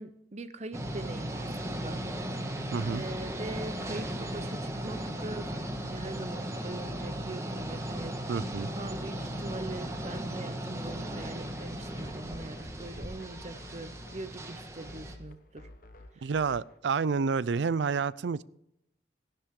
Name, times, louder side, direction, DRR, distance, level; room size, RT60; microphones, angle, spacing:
voice 1, 0.0-2.0 2.9-5.5 5.9-8.3 8.7-15.7, right 2 dB, 40° right, 12 dB, 0.8 m, -42 dB
sound 1, 0.7-15.2, right 1 dB, 15° right, 1.3 m, -37 dB
sound 2, 0.8-16.8, left 1 dB, 50° left, 1.0 m, -51 dB
voice 2, 2.7-3.0 8.3-8.7 16.2-18.4, right 5 dB, 85° right, 19 dB, 0.4 m, -29 dB
15.0 x 11.0 x 3.7 m, 0.79 s
head